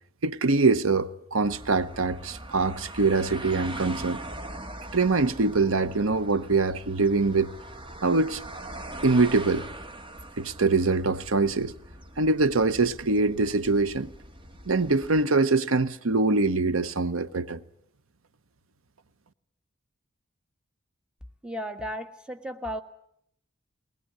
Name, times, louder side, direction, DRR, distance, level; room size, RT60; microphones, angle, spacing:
voice 1, 0.2-4.2 4.9-7.5 8.0-8.4 9.0-9.7 10.4-11.7 12.2-14.1 14.7-17.6, right 3 dB, 85° right, 0.9 m, -24 dB
sound 1, 1.4-15.2, right 1 dB, 25° right, 1.6 m, -42 dB
voice 2, 21.4-22.8, equal, 5° right, 1.5 m, -34 dB
22.0 x 19.5 x 8.7 m
head